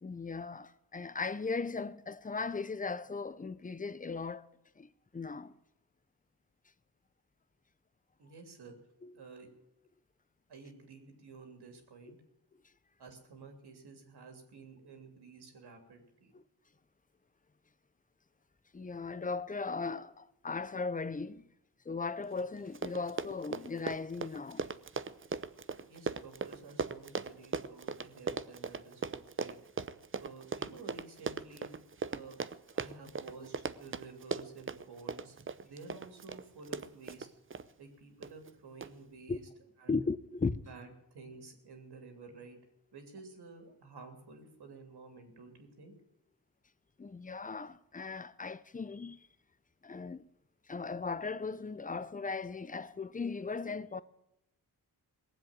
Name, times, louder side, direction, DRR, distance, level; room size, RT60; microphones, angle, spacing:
voice 1, 0.0-4.5 4.8-5.5 9.0-9.2 16.3-16.4 18.7-21.4 21.8-24.7 39.3-39.4 39.9-40.6 47.0-49.3 49.8-50.2 50.7-54.0, left 4 dB, 20° left, 0.7 m, -37 dB
voice 2, 8.2-8.7 9.1-9.5 10.5-12.2 13.0-16.3 25.9-29.6 30.2-31.7 32.1-32.4 32.7-35.4 35.6-37.3 37.8-39.4 39.8-40.0 40.6-40.9 41.1-42.6 42.9-45.9, right 4 dB, 80° right, 3.2 m, -52 dB
Run, 22.4-22.5 22.7-37.7 38.2-38.5 38.8-38.9, right 5 dB, 35° right, 0.7 m, -38 dB
18.0 x 7.8 x 9.0 m
cardioid pair, 75°, 39 cm